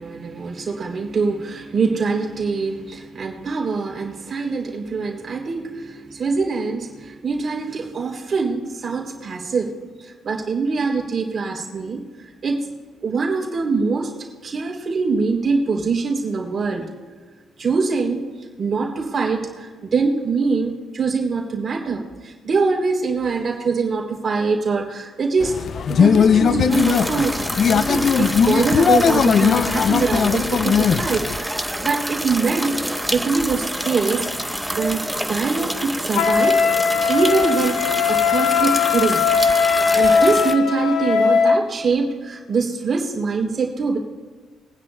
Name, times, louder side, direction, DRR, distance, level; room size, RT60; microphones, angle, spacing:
voice 1, 0.0-12.7 13.0-14.1 14.4-16.8 17.6-18.2 18.6-25.5 25.9-32.7 33.1-34.2 34.7-36.6 37.1-39.2 39.9-44.0, right 4 dB, 45° right, -1 dB, 3.0 m, -23 dB
sound 1, 25.4-31.4, left 7 dB, 55° left, 0.3 m, -18 dB
sound 2, 26.7-40.6, equal, ahead, 0.7 m, -28 dB
Wind instrument woodwind instrument, 36.1-41.6, left 6 dB, 85° left, 1.9 m, -19 dB
22.5 x 9.9 x 2.2 m, 1.5 s
cardioid pair, 90°, 0 cm